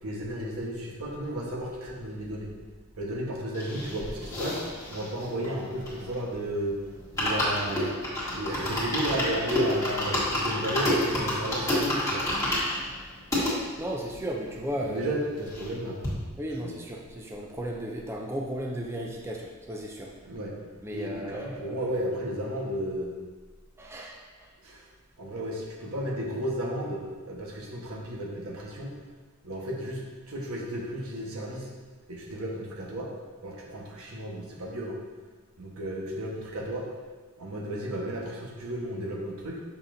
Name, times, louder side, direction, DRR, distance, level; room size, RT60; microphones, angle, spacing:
voice 1, 0.0-2.5 3.0-4.6 4.9-6.8 7.1-7.9 8.3-12.2 14.8-16.0 16.6-16.7 20.3-20.5 20.9-23.1 24.6-24.8 25.2-28.9 29.4-30.0 30.3-31.7 32.1-33.1 33.4-35.0 35.6-36.9 37.4-39.6, right 1 dB, 80° right, -3 dB, 1.2 m, -33 dB
sound 1, 3.5-6.3 6.6-6.7 7.0-13.5 14.1-14.2 14.4-14.5 14.8-15.8 16.0-16.1, left 1 dB, 15° left, 1.6 m, -29 dB
voice 2, 13.3-15.2 16.4-20.1 20.8-21.9 23.8-24.5, equal, 10° right, -1 dB, 0.5 m, -35 dB
6.8 x 5.5 x 2.6 m, 1.4 s
head